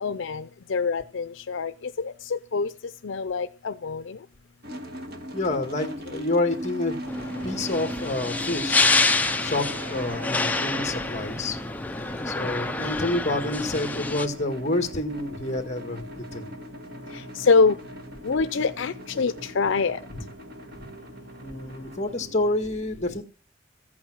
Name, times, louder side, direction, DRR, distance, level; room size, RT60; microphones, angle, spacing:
voice 1, 0.0-1.7 2.0-2.7 3.0-4.2 17.3-17.8 18.2-20.0, left 4 dB, 75° left, 12 dB, 0.5 m, -25 dB
sound 1, 4.6-22.5, equal, 50° right, 1.7 m, -39 dB
voice 2, 5.3-7.0 7.4-11.6 12.3-16.5 20.1-20.2 21.4-23.2, left 2 dB, 35° left, 7 dB, 1.8 m, -28 dB
sound 2, 7.1-14.3, left 3 dB, 10° left, 0.5 m, -27 dB
14.5 x 8.7 x 6.1 m, 0.39 s
head